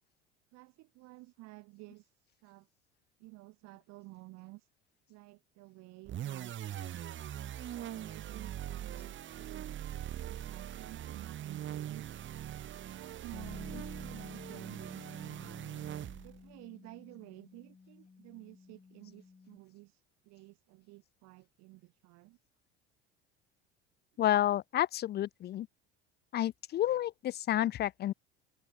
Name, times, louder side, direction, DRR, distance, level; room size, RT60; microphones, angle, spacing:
voice 1, 0.5-2.1 2.4-2.7 3.2-4.7 5.1-7.0 7.7-12.1 12.5-15.7 16.2-22.4, right 22 dB, 65° right, 3.0 m, -53 dB
sound 1, 6.1-16.5, right 11 dB, 40° right, 1.2 m, -42 dB
Bass guitar, 13.3-19.6, left 4 dB, 20° left, 1.6 m, -52 dB
voice 2, 24.2-25.7 26.3-28.1, left 12 dB, 35° left, 0.5 m, -30 dB
hypercardioid pair, 75°, 29 cm